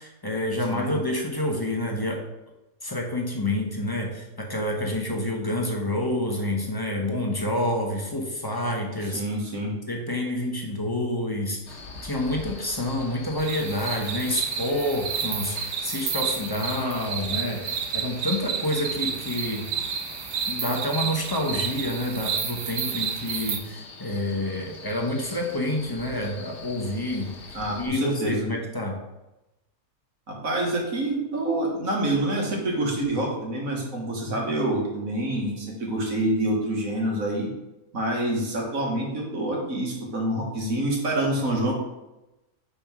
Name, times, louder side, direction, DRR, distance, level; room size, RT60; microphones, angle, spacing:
voice 1, 0.0-2.2 2.8-9.2 9.9-19.7 20.5-27.3 27.8-29.0, left 1 dB, 20° left, 0 dB, 0.9 m, -28 dB
voice 2, 9.1-9.7 27.5-28.5 30.3-37.5 37.9-41.7, right 1 dB, 65° right, -2 dB, 2.0 m, -27 dB
Male speech man speaking, 11.7-27.9, left 3 dB, 55° left, 1.3 m, -44 dB
sound 1, 13.4-23.6, right 7 dB, 85° right, 1.4 m, -31 dB
5.4 x 4.3 x 5.9 m, 0.97 s
omnidirectional pair, 1.5 m